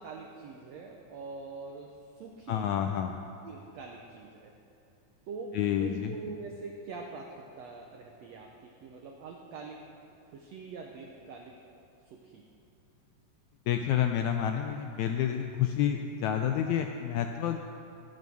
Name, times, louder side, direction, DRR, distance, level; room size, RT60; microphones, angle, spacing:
voice 1, 0.0-2.8 3.4-4.5 5.3-9.8 10.3-11.6 12.0-12.4, right 4 dB, 75° right, 1 dB, 1.6 m, -44 dB
voice 2, 2.5-3.1 5.5-6.1 13.7-17.6, left 9 dB, 85° left, 5 dB, 1.6 m, -29 dB
17.5 x 7.4 x 6.2 m, 2.6 s
omnidirectional pair, 3.9 m